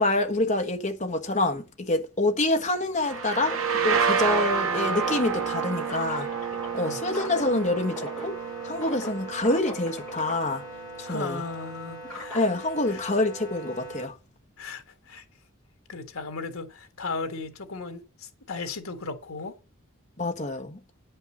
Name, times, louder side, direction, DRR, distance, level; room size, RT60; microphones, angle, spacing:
voice 1, 0.0-3.6 3.8-6.3 6.7-8.3 8.6-10.6 11.0-11.4 12.3-14.1 20.2-20.8, left 2 dB, 35° left, 1.3 m, -26 dB
sound 1, 3.0-10.6, right 6 dB, 80° right, 1.2 m, -29 dB
sound 2, 3.1-14.1, equal, 5° left, 5.2 m, -39 dB
voice 2, 11.0-12.4 12.9-13.0 14.6-15.2 15.9-19.5, left 4 dB, 75° left, 1.7 m, -36 dB
9.7 x 5.4 x 7.1 m
head